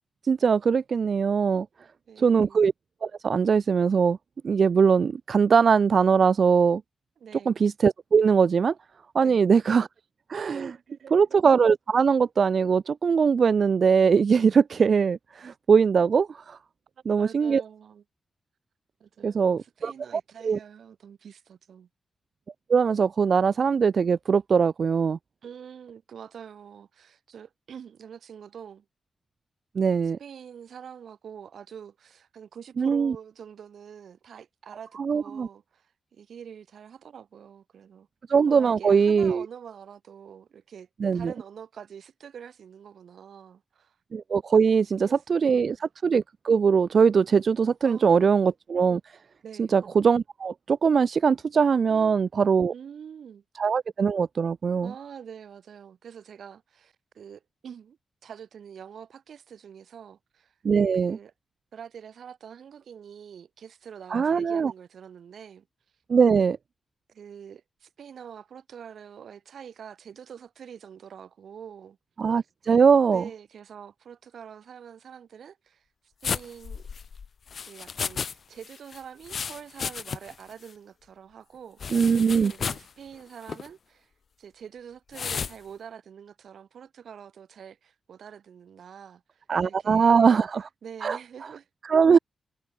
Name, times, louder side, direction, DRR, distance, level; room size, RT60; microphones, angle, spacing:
voice 1, 0.2-1.7 2.2-2.7 3.0-4.2 4.4-6.8 7.4-8.7 9.1-9.9 10.3-10.8 11.1-16.6 17.0-17.6 19.2-19.9 20.4-20.6 22.7-25.2 29.7-30.2 32.8-33.1 35.0-35.5 38.3-39.5 41.0-41.3 44.1-49.0 49.6-52.7 53.6-54.9 60.6-61.2 64.1-64.7 66.1-66.6 72.2-73.2 81.9-82.5 89.5-90.7 91.0-91.2 91.8-92.2, right 6 dB, 50° right, 1.6 m, -21 dB
voice 2, 2.1-2.6 7.2-7.5 9.2-9.4 10.5-11.3 17.1-18.0 19.0-21.9 25.4-28.9 30.2-38.1 38.5-44.0 44.7-45.7 47.8-48.4 49.4-49.7 51.9-52.2 52.7-53.4 54.8-60.5 61.0-61.3 61.7-65.7 67.1-72.0 72.3-72.4 73.1-75.8 76.2-76.9 77.6-82.1 82.5-84.1 84.4-90.4 90.8-91.7, right 8 dB, 70° right, 7.0 m, -45 dB
sound 1, 76.2-78.3 78.6-80.4 80.7-80.8 81.8-82.9 83.4-83.7 85.1-85.5, left 6 dB, 50° left, 4.3 m, -33 dB
wide cardioid pair, 150°, 0 cm